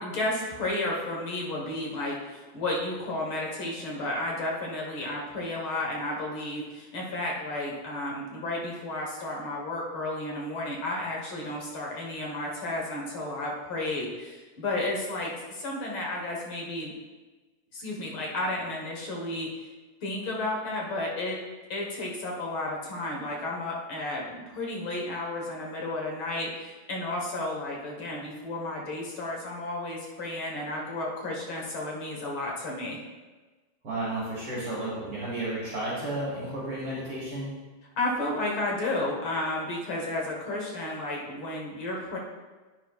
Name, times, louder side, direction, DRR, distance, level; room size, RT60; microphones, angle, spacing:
voice 1, 0.0-16.9 17.7-19.5 20.0-21.4 21.7-33.0 38.0-42.2, left 2 dB, 55° left, -2 dB, 1.8 m, -32 dB
voice 2, 33.8-37.6, right 1 dB, 50° right, -8 dB, 2.7 m, -32 dB
10.0 x 9.5 x 2.4 m, 1.3 s
omnidirectional pair, 3.4 m